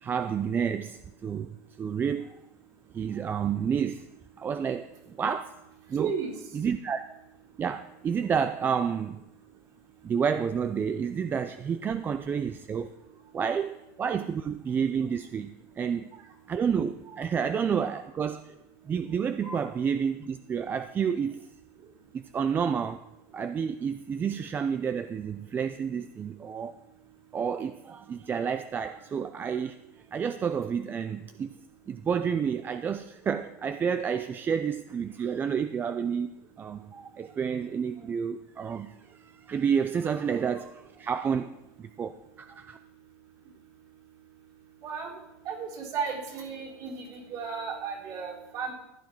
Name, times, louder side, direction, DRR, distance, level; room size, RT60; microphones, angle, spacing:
voice 1, 0.0-2.4 2.9-4.1 4.4-5.5 5.9-6.1 6.5-7.2 7.6-9.2 10.0-12.9 13.3-15.5 15.8-16.1 16.5-18.5 18.9-21.4 22.1-23.0 23.3-26.7 27.3-29.8 30.1-31.6 31.9-36.3 36.6-42.8, right 7 dB, 25° right, 10 dB, 0.5 m, -30 dB
voice 2, 6.0-6.3 13.4-13.5 14.1-14.2 17.1-17.2 19.4-19.6 44.8-45.2 45.4-48.7, right 6 dB, 50° right, -2 dB, 4.1 m, -34 dB
15.5 x 9.6 x 4.6 m, 0.92 s
supercardioid pair, 140°, 8 cm